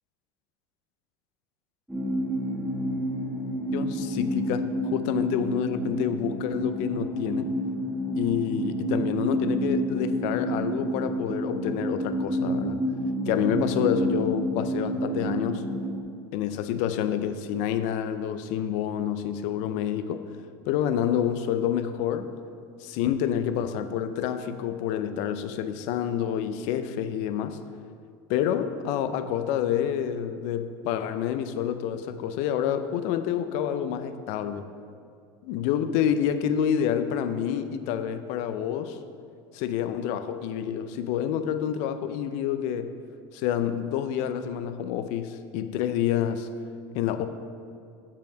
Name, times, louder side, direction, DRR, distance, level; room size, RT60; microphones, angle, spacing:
sound 1, 1.9-16.0, equal, ahead, 0.9 m, -29 dB
voice 1, 3.7-7.5 8.2-12.8 13.3-15.7 16.3-20.2 20.7-22.3 22.8-27.6 28.3-34.7 35.4-39.0 39.5-42.9 43.3-46.5 46.9-47.3, left 9 dB, 65° left, 10 dB, 0.5 m, -28 dB
6.9 x 5.6 x 5.1 m, 2.4 s
supercardioid pair, 110°, 13 cm